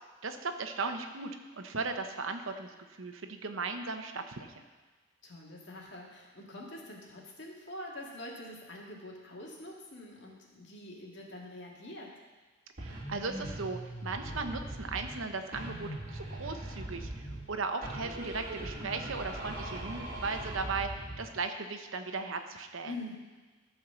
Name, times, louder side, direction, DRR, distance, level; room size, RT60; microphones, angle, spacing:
voice 1, 0.2-1.3 1.6-2.7 3.0-4.6 12.8-22.9, right 4 dB, 75° right, 6 dB, 0.9 m, -37 dB
voice 2, 5.2-12.1 22.9-23.1, left 1 dB, 60° left, -2 dB, 2.0 m, -45 dB
sound 1, 12.8-15.2 15.5-17.5 17.8-21.3, right 1 dB, 45° right, 2.2 m, -40 dB
13.5 x 4.7 x 6.8 m, 1.3 s
head